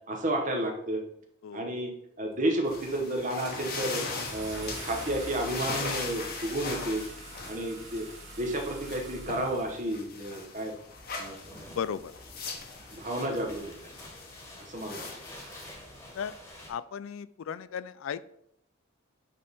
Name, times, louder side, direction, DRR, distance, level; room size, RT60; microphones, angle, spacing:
voice 1, 0.1-1.0 1.5-4.0 4.3-7.0 7.4-8.0 8.4-10.7 11.2-11.6 12.9-13.7 14.6-15.1, right 1 dB, 35° right, 2 dB, 1.1 m, -31 dB
Car / Engine starting, 2.3-2.6 3.1-10.0, right 2 dB, 55° right, 2.1 m, -44 dB
sound 1, 2.6-16.3, left 4 dB, 45° left, 1.1 m, -40 dB
sound 2, 11.2-16.7, left 1 dB, 10° left, 1.5 m, -48 dB
voice 2, 11.7-12.1 16.1-16.3 16.7-18.3, left 7 dB, 70° left, 16 dB, 0.3 m, -35 dB
8.6 x 3.6 x 4.1 m, 0.73 s
head